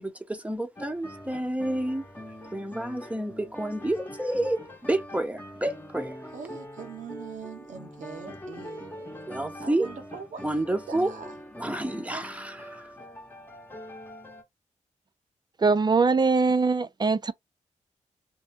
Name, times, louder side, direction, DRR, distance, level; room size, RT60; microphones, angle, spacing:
voice 1, 0.0-2.0 2.5-6.1 9.1-9.9 10.4-11.1 11.5-12.9, right 1 dB, 10° right, 0.9 m, -30 dB
sound 1, 0.8-14.4, equal, 15° left, 1.1 m, -43 dB
voice 2, 6.3-9.1 9.6-11.3, right 6 dB, 75° right, 0.9 m, -42 dB
voice 3, 15.6-17.3, right 4 dB, 35° right, 0.5 m, -22 dB
2.8 x 2.2 x 3.4 m
cardioid pair, 70°, 13 cm